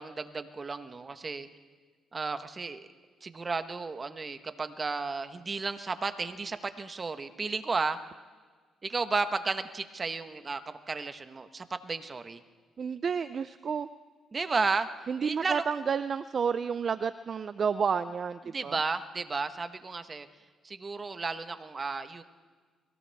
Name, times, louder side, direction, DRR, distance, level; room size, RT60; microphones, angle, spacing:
voice 1, 0.0-1.5 2.1-2.9 3.2-8.0 8.8-12.4 14.3-14.9 15.2-15.6 18.4-20.3 20.6-22.2, right 4 dB, 35° right, 10 dB, 1.2 m, -33 dB
voice 2, 12.8-13.9 15.1-18.8, right 6 dB, 50° right, 13 dB, 0.5 m, -30 dB
23.0 x 16.5 x 3.5 m, 1.5 s
supercardioid pair, 65°, 0 cm